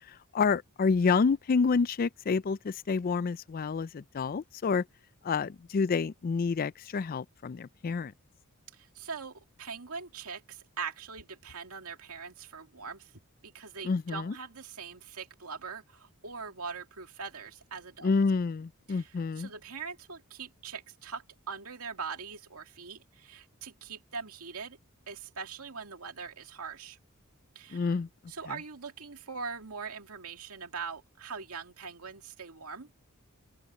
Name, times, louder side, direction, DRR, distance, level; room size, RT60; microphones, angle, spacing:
voice 1, 0.1-4.8 5.2-8.1 13.8-14.3 18.0-19.5 27.7-28.1 28.5-28.6, left 5 dB, 40° left, 0.4 m, -28 dB
voice 2, 8.7-13.1 13.4-18.1 18.9-24.8 25.1-27.0 27.6-27.9 28.3-32.9, right 5 dB, 80° right, 2.2 m, -42 dB
open air
head